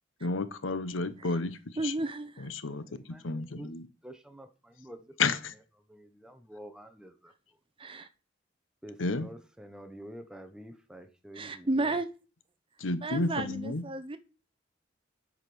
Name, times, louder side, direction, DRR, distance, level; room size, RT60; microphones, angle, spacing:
voice 1, 0.2-1.6 1.8-1.9 2.4-2.8 3.2-3.8 5.2-5.5 9.0-9.3 12.8-13.8, left 3 dB, 90° left, 0.9 m, -31 dB
voice 2, 1.8-2.5 7.8-8.1 11.3-12.1 13.0-14.2, right 2 dB, 30° right, 0.7 m, -32 dB
voice 3, 2.9-3.7 4.0-5.0 5.9-7.3 8.8-12.0, right 1 dB, 5° right, 0.9 m, -48 dB
8.0 x 5.2 x 6.1 m
head